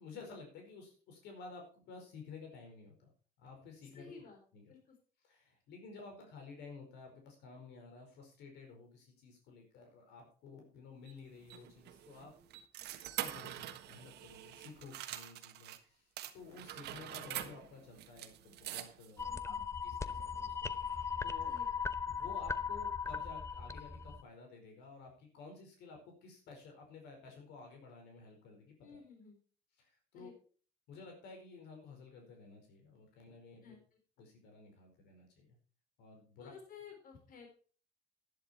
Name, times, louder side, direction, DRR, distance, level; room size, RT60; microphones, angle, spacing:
voice 1, 0.0-3.1 3.4-4.1 4.5-4.7 5.2-12.3 13.0-19.5 19.8-21.5 22.1-29.0 29.8-30.3 30.9-33.7 34.2-35.6 36.0-36.5, left 4 dB, 85° left, 3 dB, 4.8 m, -53 dB
voice 2, 3.9-4.4 4.7-4.8 12.8-12.9 19.3-19.6 21.4-21.7 28.8-29.4 30.1-30.3 33.6-33.8 36.4-37.5, left 5 dB, 55° left, 3 dB, 4.1 m, -53 dB
sound 1, 11.1-15.8 16.2-19.2, right 13 dB, 80° right, 1.5 m, -45 dB
sound 2, 19.2-24.2, left 6 dB, 15° left, 0.8 m, -38 dB
11.5 x 10.5 x 4.4 m, 0.40 s
cardioid pair, 110°, 17 cm